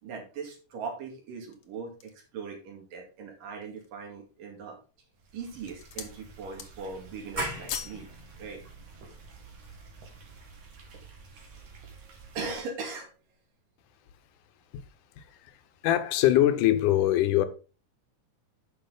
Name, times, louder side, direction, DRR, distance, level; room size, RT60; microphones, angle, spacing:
voice 1, 0.0-4.8 5.3-8.1 8.4-8.6 12.3-13.1, right 4 dB, 85° right, 4.0 m, -39 dB
sound 1, 1.3-2.3 2.9-3.0 3.5-4.0 4.7-5.1 5.4-6.2 6.5-7.0 7.3-8.0 8.4-8.5, left 8 dB, 60° left, 1.6 m, -41 dB
sound 2, 5.1-12.6, right 4 dB, 65° right, 3.5 m, -50 dB
sound 3, 7.4-12.7, right 1 dB, 15° right, 1.7 m, -42 dB
voice 2, 15.2-15.5 15.8-17.4, left 13 dB, 80° left, 2.3 m, -23 dB
10.5 x 6.2 x 3.9 m
omnidirectional pair, 3.7 m